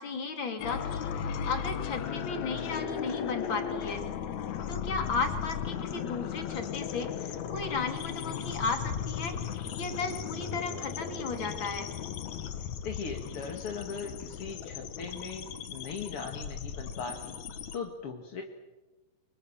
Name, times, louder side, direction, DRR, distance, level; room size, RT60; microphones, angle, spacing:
voice 1, 0.0-4.0 4.7-11.9, left 4 dB, 30° left, 5 dB, 2.8 m, -35 dB
sound 1, 0.6-17.8, left 8 dB, 65° left, 1.9 m, -36 dB
voice 2, 12.8-17.4 17.7-18.4, left 5 dB, 45° left, 3 dB, 1.9 m, -39 dB
29.5 x 25.5 x 7.4 m, 1.1 s
omnidirectional pair, 5.0 m